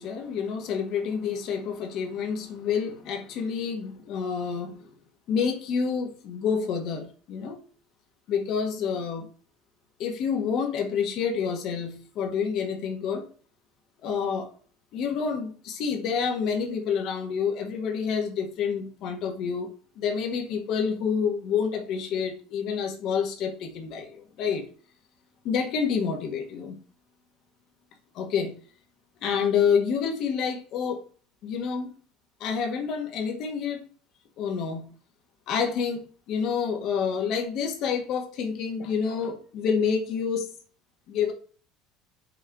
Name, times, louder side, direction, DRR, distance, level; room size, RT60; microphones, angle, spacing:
voice 1, 0.0-4.9 5.3-7.6 8.3-9.3 10.0-13.2 14.0-14.5 14.9-19.7 20.0-24.6 25.4-26.7 28.1-28.5 29.2-31.0 31.4-31.9 32.4-33.8 34.4-34.8 35.5-40.5 41.1-41.3, left 6 dB, 55° left, 1.7 m, -28 dB
6.4 x 3.3 x 4.9 m
cardioid pair, 140°, 0 cm